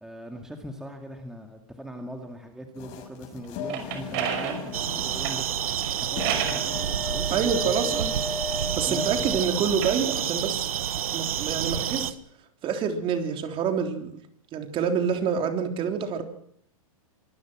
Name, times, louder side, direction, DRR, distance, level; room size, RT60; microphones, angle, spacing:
voice 1, 0.0-5.4 6.0-7.9 8.9-9.4, equal, 5° right, 3 dB, 2.3 m, -40 dB
sound 1, 2.7-9.5, left 4 dB, 45° left, 6.7 m, -36 dB
sound 2, 3.4-6.7 7.4-9.1 9.6-12.0, right 8 dB, 45° right, 6.0 m, -34 dB
sound 3, 4.7-12.1, right 10 dB, 80° right, 1.4 m, -29 dB
voice 2, 7.0-8.1 8.8-10.7 11.1-12.1 12.6-14.1 14.5-16.2, right 6 dB, 30° right, 5 dB, 3.5 m, -27 dB
25.0 x 21.0 x 6.3 m, 0.68 s
hypercardioid pair, 130°, 18 cm